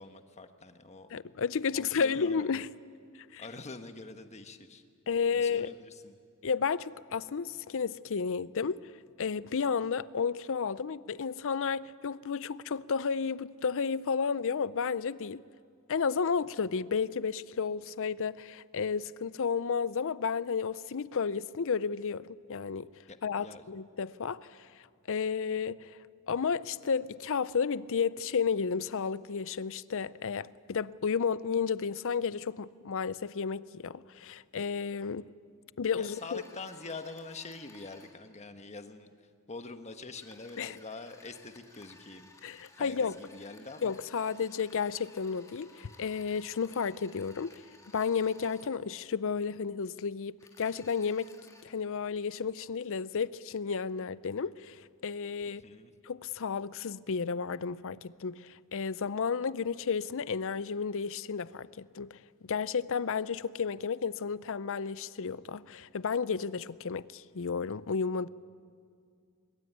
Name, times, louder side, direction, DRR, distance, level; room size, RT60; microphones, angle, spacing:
voice 1, 0.0-1.1 1.7-2.5 3.4-4.8 5.3-6.2 23.1-23.6 36.0-39.1 39.5-42.3 42.7-44.0 55.5-55.9, left 3 dB, 30° left, 1.3 m, -45 dB
voice 2, 1.1-2.7 3.3-3.4 5.1-5.7 6.4-8.9 9.2-15.4 15.9-22.9 23.2-24.7 25.1-26.0 26.3-35.3 35.8-36.4 40.6-40.8 42.4-43.2 43.8-47.6 47.9-51.3 51.6-55.6 56.0-68.3, left 6 dB, 65° left, 0.6 m, -32 dB
sound 1, 36.0-38.1 40.1-48.7 50.4-51.6, left 2 dB, 15° left, 2.6 m, -57 dB
22.5 x 22.0 x 9.3 m
head